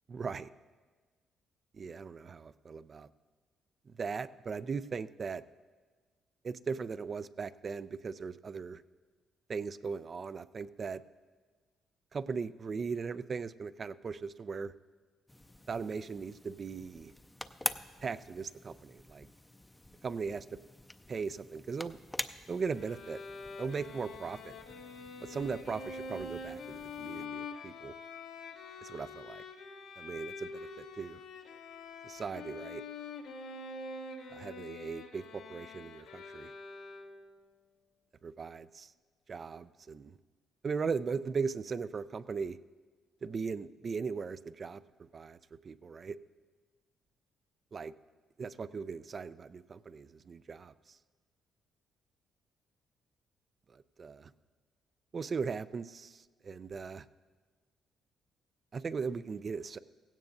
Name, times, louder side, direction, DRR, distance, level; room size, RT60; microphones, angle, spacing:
voice 1, 0.1-0.5 1.7-3.1 3.9-5.4 6.4-8.8 9.5-11.0 12.1-14.7 15.7-17.1 18.0-19.3 20.0-20.6 21.1-22.0 22.5-23.2 23.6-24.6 25.2-28.0 28.8-29.4 30.0-31.2 32.0-32.8 34.3-36.5 38.2-38.9 39.3-40.2 40.6-42.6 43.2-44.8 45.1-45.4 45.6-46.2 47.7-47.9 48.4-51.0 53.7-54.3 55.1-57.1 58.7-59.8, right 5 dB, 40° right, 14 dB, 0.4 m, -38 dB
sound 1, 15.3-27.3, left 1 dB, 10° left, 0.5 m, -46 dB
Bowed string instrument, 22.7-37.4, left 3 dB, 85° left, 1.2 m, -45 dB
16.5 x 16.0 x 2.7 m, 1.4 s
cardioid pair, 85°, 0 cm